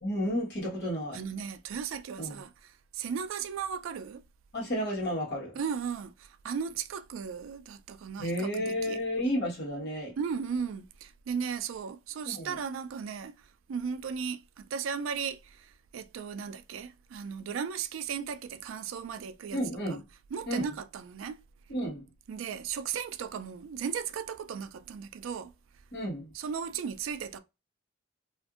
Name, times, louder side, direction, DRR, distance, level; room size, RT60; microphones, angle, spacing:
voice 1, 0.0-1.2 2.2-2.4 4.5-5.6 8.2-10.1 12.2-12.5 19.5-20.0 20.5-20.7 21.7-22.0 25.9-26.3, equal, 55° left, 1.3 m, -32 dB
voice 2, 1.1-4.2 5.6-9.0 10.2-13.3 13.7-19.6 19.9-20.0 20.3-21.4 22.3-25.5 26.3-27.4, right 6 dB, 85° right, 0.3 m, -36 dB
2.5 x 2.5 x 2.4 m
head